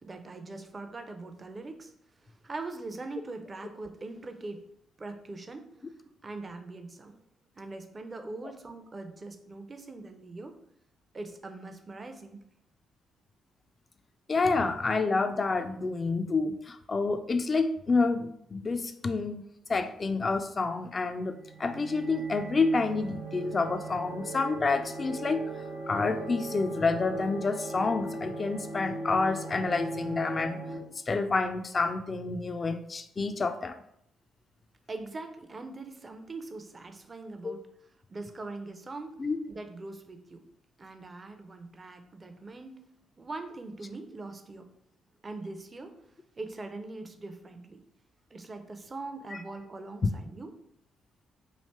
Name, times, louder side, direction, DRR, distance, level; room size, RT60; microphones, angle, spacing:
voice 1, 0.0-1.9 2.2-4.6 5.0-5.7 6.0-7.2 7.6-10.6 11.1-12.4 34.9-37.6 38.1-40.4 40.8-42.9 43.2-44.7 45.2-46.1 46.4-47.8 48.3-50.5, right 3 dB, 35° right, 6 dB, 0.6 m, -42 dB
voice 2, 14.3-19.4 19.7-25.4 25.9-30.6 31.1-33.8 37.4-37.5 39.2-39.4, left 3 dB, 35° left, 8 dB, 0.4 m, -28 dB
sound 1, 21.2-30.8, right 2 dB, 90° right, 0.6 m, -38 dB
3.2 x 2.8 x 4.3 m, 0.73 s
hypercardioid pair, 45°, 0 cm